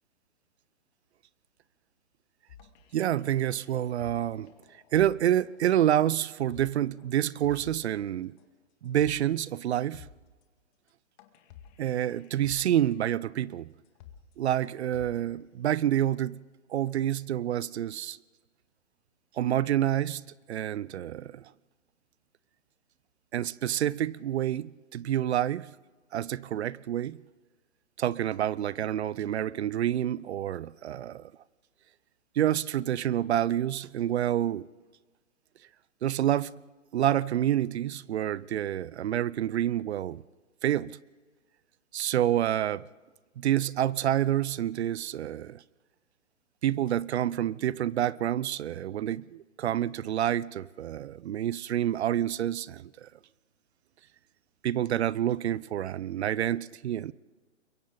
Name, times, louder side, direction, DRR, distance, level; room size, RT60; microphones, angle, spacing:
sound 1, 2.5-8.0 8.4-8.5 8.8-9.3 9.6-9.7 9.9-10.4 10.9-11.0 11.2-13.1 13.5-13.6 13.9-14.3 14.6-15.4, left 9 dB, 35° left, 2.0 m, -53 dB
voice 1, 2.9-4.5 4.9-8.4 8.8-10.1 11.8-13.7 14.4-16.4 16.7-18.2 19.4-21.4 23.3-25.7 26.1-27.2 28.0-31.3 32.4-34.7 36.0-36.5 36.9-40.2 40.6-41.0 41.9-42.9 43.4-45.6 46.6-53.1 54.6-57.1, right 11 dB, 60° right, 0.7 m, -28 dB
30.0 x 23.0 x 4.0 m
hypercardioid pair, 140°, 38 cm